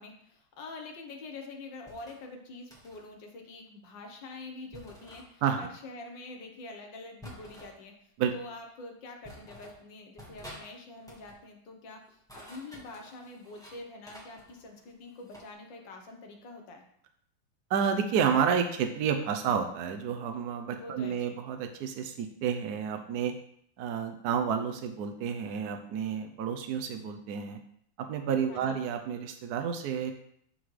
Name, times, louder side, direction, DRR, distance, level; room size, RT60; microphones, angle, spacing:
voice 1, 0.0-16.8 20.7-21.2 28.5-28.8, left 2 dB, 65° left, 3 dB, 1.6 m, -46 dB
sound 1, 1.9-2.2 2.7-3.1 4.7-5.3 7.2-7.7 8.6-8.7 9.2-9.8 10.2-10.7 11.0-11.4 12.1-13.8 14.1-15.5, equal, ahead, 1.2 m, -50 dB
voice 2, 17.7-23.3 23.8-27.6 28.0-30.1, right 7 dB, 75° right, 5 dB, 0.9 m, -30 dB
12.0 x 4.0 x 3.2 m, 0.68 s
omnidirectional pair, 2.3 m